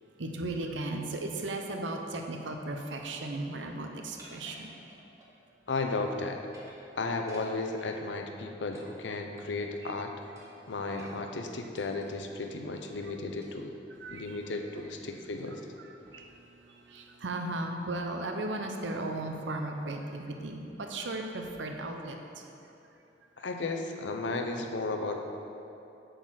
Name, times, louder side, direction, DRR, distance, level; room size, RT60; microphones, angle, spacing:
voice 1, 0.2-4.7 9.8-9.9 10.6-11.1 13.0-13.1 14.0-14.4 15.5-22.4, right 2 dB, 90° right, 3 dB, 0.7 m, -36 dB
sound 1, 4.2-5.3 5.7-6.2 6.4-8.0 8.7-9.7 10.4-12.6 13.4-13.7 14.1-14.2 14.8-15.0 15.3-15.6 16.1-16.4, right 1 dB, 15° right, 1.2 m, -56 dB
voice 2, 5.7-6.4 7.0-10.1 10.7-13.7 14.1-15.6 23.4-25.2, left 3 dB, 80° left, 4 dB, 0.6 m, -34 dB
7.8 x 4.0 x 6.4 m, 2.8 s
head